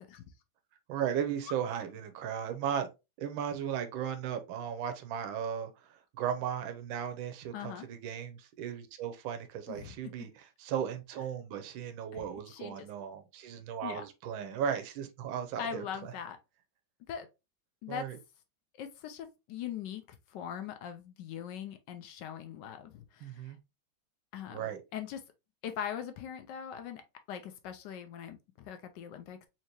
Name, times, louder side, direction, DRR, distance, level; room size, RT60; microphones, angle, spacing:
voice 1, 0.9-2.9 3.2-16.1 17.9-18.2 23.2-23.6 24.5-24.8, right 8 dB, 90° right, 1.4 m, -36 dB
voice 2, 7.5-7.9 9.7-10.0 12.1-12.9 13.8-14.0 15.6-16.4 17.1-17.3 17.8-18.1 18.8-20.0 20.3-23.6 24.3-25.2 25.6-27.0 27.3-29.4, left 9 dB, 75° left, 1.1 m, -41 dB
4.5 x 2.8 x 2.9 m
omnidirectional pair, 2.1 m